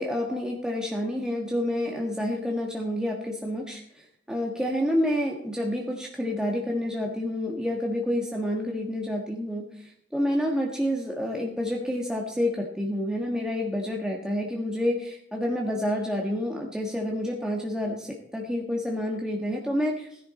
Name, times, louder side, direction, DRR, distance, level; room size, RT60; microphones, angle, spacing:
voice 1, 0.0-3.8 4.3-9.6 10.1-20.1, left 1 dB, 5° right, -1 dB, 1.5 m, -28 dB
16.5 x 11.0 x 4.3 m, 0.71 s
head